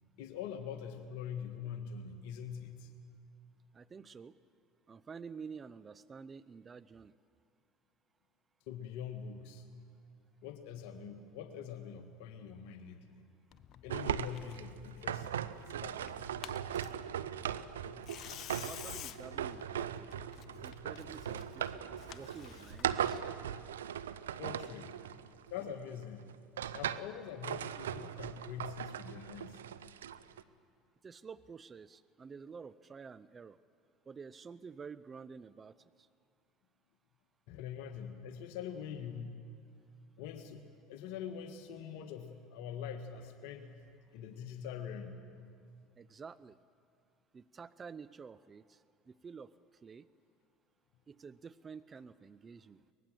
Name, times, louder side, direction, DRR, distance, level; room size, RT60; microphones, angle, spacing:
voice 1, 0.2-2.9 8.7-9.7 10.4-13.2 13.8-15.3 15.7-16.3 24.4-25.0 25.5-26.3 26.7-29.6 37.5-39.4 40.2-43.7 44.1-45.3, left 8 dB, 70° left, 7 dB, 1.4 m, -44 dB
voice 2, 3.7-4.3 4.9-7.1 18.6-20.2 20.6-21.8 22.1-23.2 31.0-33.6 34.1-36.1 46.0-46.6 47.3-49.5 49.8-50.1 51.1-52.8, right 5 dB, 30° right, 17 dB, 0.6 m, -50 dB
Tearing, 13.5-23.1, left 10 dB, 55° left, 1.0 m, -51 dB
sound 1, 13.9-25.8 26.3-27.1 27.4-30.4, right 9 dB, 85° right, 0.6 m, -39 dB
23.5 x 20.0 x 7.6 m, 2.3 s
hypercardioid pair, 75°, 0 cm